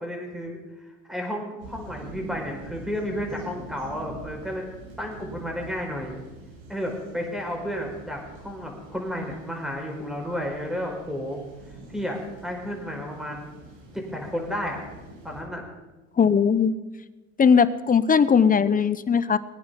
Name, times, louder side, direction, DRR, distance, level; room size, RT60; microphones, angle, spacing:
voice 1, 0.0-4.6 5.0-6.2 6.7-11.4 11.9-13.5 13.9-14.9 15.2-15.6, equal, ahead, 1 dB, 4.7 m, -32 dB
sound 1, 1.6-15.4, right 2 dB, 85° right, 5.8 m, -45 dB
voice 2, 16.2-16.7 17.4-19.4, left 6 dB, 25° left, 15 dB, 0.8 m, -19 dB
21.0 x 9.5 x 5.8 m, 1.2 s
cardioid pair, 100°, 32 cm